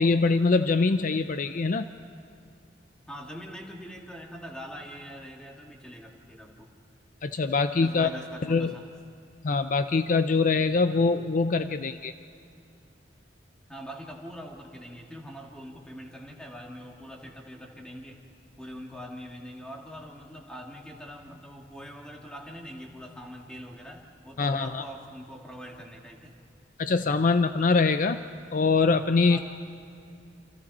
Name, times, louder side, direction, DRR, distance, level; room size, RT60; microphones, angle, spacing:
voice 1, 0.0-1.9 7.2-8.1 8.5-8.7 9.4-12.1 24.4-24.8 26.8-28.2 28.5-29.4, left 4 dB, 50° left, 10 dB, 0.5 m, -23 dB
voice 2, 3.1-6.7 7.8-8.8 13.7-18.2 18.6-26.3 29.3-29.4, equal, 5° left, 0 dB, 2.2 m, -43 dB
28.5 x 26.0 x 4.2 m, 2.4 s
head